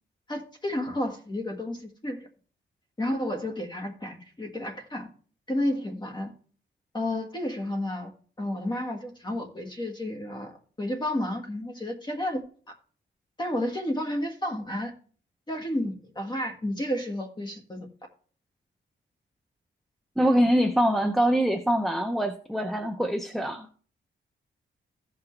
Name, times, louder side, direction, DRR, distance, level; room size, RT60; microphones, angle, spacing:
voice 1, 0.3-2.3 3.0-5.1 5.5-6.3 6.9-8.1 8.4-10.5 10.8-12.4 12.7-12.8 13.4-14.9 15.5-17.9, left 1 dB, 20° left, 3 dB, 1.6 m, -31 dB
voice 2, 20.2-23.7, equal, ahead, 5 dB, 0.5 m, -24 dB
15.0 x 5.9 x 3.2 m, 0.43 s
wide cardioid pair, 170°, 20 cm